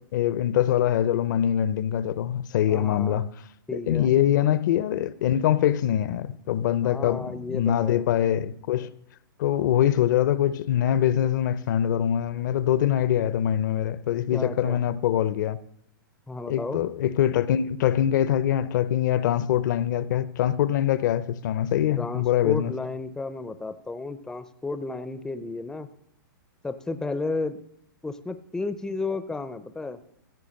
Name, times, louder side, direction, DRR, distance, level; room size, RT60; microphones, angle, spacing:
voice 1, 0.1-3.3 3.7-8.9 9.4-15.6 16.5-22.7, left 10 dB, 60° left, 0.7 m, -23 dB
voice 2, 2.7-3.2 3.7-4.1 6.8-8.1 14.3-14.8 16.3-16.8 22.0-25.9 26.6-27.6 28.0-30.0, left 3 dB, 5° left, 0.5 m, -33 dB
15.0 x 6.7 x 6.5 m
hypercardioid pair, 135°, 12 cm